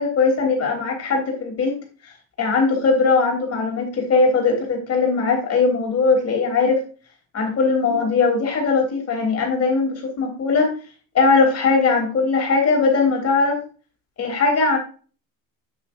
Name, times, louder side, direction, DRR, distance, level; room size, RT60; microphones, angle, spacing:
voice 1, 0.0-1.8 2.4-6.8 7.3-10.7 11.1-13.6 14.2-14.8, left 4 dB, 40° left, 1 dB, 3.5 m, -19 dB
9.1 x 8.5 x 2.6 m, 0.38 s
cardioid pair, 170°, 38 cm